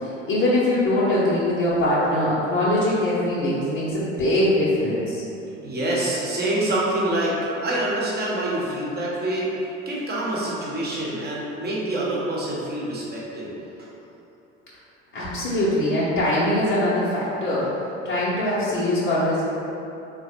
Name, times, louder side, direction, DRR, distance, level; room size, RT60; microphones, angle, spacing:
voice 1, 0.0-5.2 15.1-17.7 18.0-19.4, left 1 dB, 30° left, -10 dB, 0.9 m, -22 dB
voice 2, 5.6-13.5, right 1 dB, 25° right, -5 dB, 1.1 m, -26 dB
3.9 x 2.2 x 4.5 m, 3.0 s
figure-of-eight pair, 65°, 37 cm